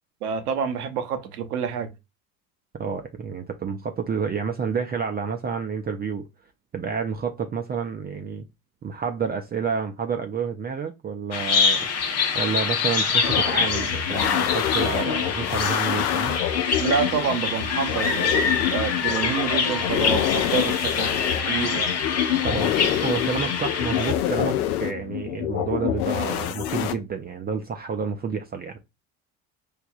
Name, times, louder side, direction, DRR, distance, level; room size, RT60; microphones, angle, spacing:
voice 1, 0.2-1.9 16.8-21.1 21.4-21.9, right 7 dB, 85° right, 0.8 m, -28 dB
voice 2, 2.7-6.3 6.7-8.4 8.8-11.9 12.3-16.4 22.4-28.8, right 6 dB, 20° right, 0.5 m, -29 dB
Bird vocalization bird call bird song, 11.3-24.1, left 5 dB, 35° left, 0.8 m, -25 dB
sound 1, 13.2-26.9, left 11 dB, 80° left, 0.6 m, -27 dB
4.7 x 2.5 x 2.3 m
hypercardioid pair, 65°, 44 cm